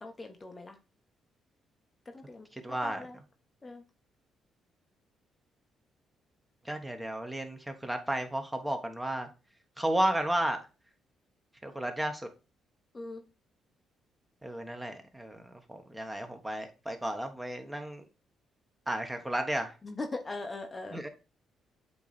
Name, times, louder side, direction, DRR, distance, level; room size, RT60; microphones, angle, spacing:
voice 1, 0.0-0.8 2.1-2.5 2.8-3.2 3.6-3.8 12.9-13.2 19.8-21.0, left 2 dB, 25° left, 0.9 m, -40 dB
voice 2, 2.6-3.1 6.6-9.3 9.8-10.6 11.6-12.3 14.4-18.0 18.9-19.7 20.9-21.1, right 1 dB, 10° right, 1.2 m, -33 dB
8.1 x 3.0 x 4.1 m
cardioid pair, 90°, 0 cm